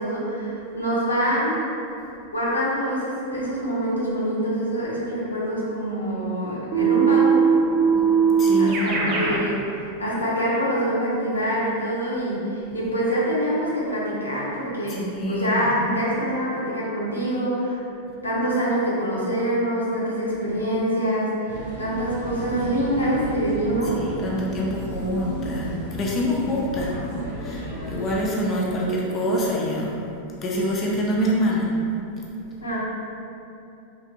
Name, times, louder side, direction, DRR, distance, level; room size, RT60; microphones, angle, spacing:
voice 1, 0.0-1.7 2.3-7.5 8.5-17.8 18.2-24.0 32.6-32.8, equal, 80° left, -6 dB, 0.6 m, -25 dB
Keyboard (musical), 6.7-9.4, right 6 dB, 35° right, 0.5 m, -19 dB
voice 2, 8.4-9.0 14.9-15.6 24.0-29.9 30.4-31.7, equal, 30° left, -4 dB, 0.4 m, -26 dB
sound 1, 21.5-28.2, equal, 75° right, 0.8 m, -33 dB
3.2 x 2.5 x 2.5 m, 2.7 s
figure-of-eight pair, 90°, 0 cm